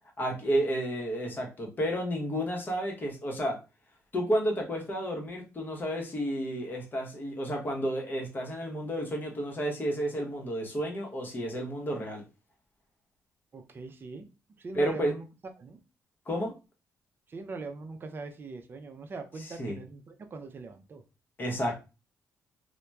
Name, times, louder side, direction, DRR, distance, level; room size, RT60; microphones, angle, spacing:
voice 1, 0.2-3.6 4.1-12.2 14.7-15.1 16.3-16.5 19.6-19.8 21.4-21.8, equal, 35° left, 1 dB, 0.8 m, -31 dB
voice 2, 13.5-14.3 14.6-15.8 17.3-21.0, right 3 dB, 35° right, 6 dB, 0.5 m, -41 dB
2.8 x 2.1 x 2.2 m, 0.30 s
cardioid pair, 95°, 6 cm